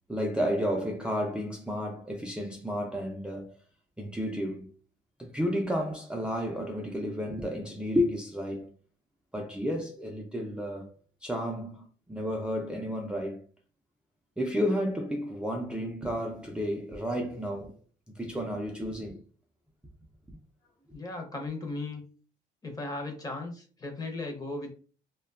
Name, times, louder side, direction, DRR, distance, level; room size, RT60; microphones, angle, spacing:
voice 1, 0.1-3.6 4.0-4.7 5.2-8.7 9.3-13.4 14.4-17.8 18.2-19.2, equal, 5° right, 0.3 m, -32 dB
voice 2, 20.9-22.1 22.6-24.7, left 2 dB, 20° left, 0.7 m, -36 dB
2.5 x 2.2 x 2.3 m
cardioid pair, 110°, 17 cm